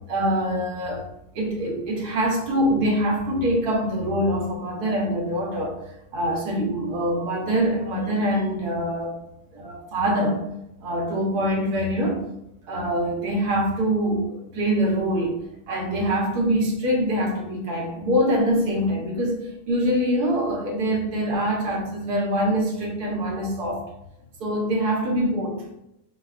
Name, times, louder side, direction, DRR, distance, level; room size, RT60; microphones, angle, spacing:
voice 1, 0.1-1.0 1.3-5.8 6.1-9.2 9.5-10.4 10.8-12.2 12.7-23.8 24.4-25.6, equal, 80° right, -1 dB, 1.4 m, -24 dB
6.5 x 2.3 x 2.4 m, 0.82 s
omnidirectional pair, 1.7 m